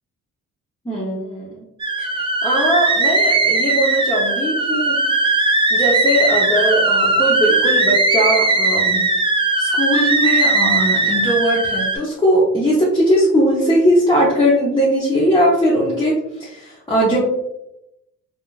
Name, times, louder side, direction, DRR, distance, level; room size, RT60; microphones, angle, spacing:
voice 1, 0.8-1.6 2.0-5.0 5.7-9.0 9.6-16.1 16.4-17.2, equal, 15° left, -6 dB, 0.8 m, -19 dB
sound 1, 1.8-12.0, right 2 dB, 15° right, 0.4 m, -18 dB
3.6 x 2.5 x 2.4 m, 0.84 s
cardioid pair, 90°, 30 cm